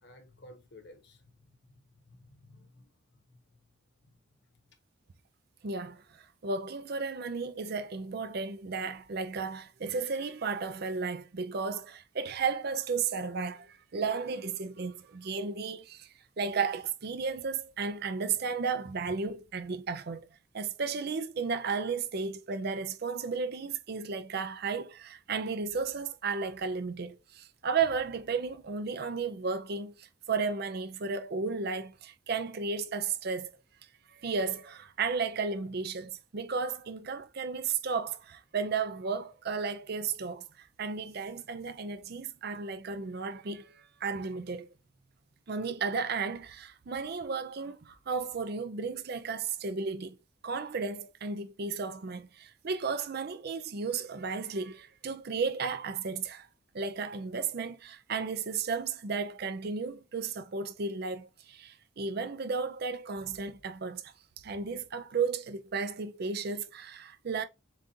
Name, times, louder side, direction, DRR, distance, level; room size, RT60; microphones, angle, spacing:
voice 1, 0.0-3.6, left 1 dB, 60° left, 1.2 m, -56 dB
voice 2, 5.6-16.1 16.4-20.3 20.5-33.5 34.1-44.7 45.5-50.2 50.4-56.5 56.7-64.0 64.4-67.4, right 5 dB, 50° right, 0.5 m, -34 dB
7.4 x 2.5 x 2.7 m
head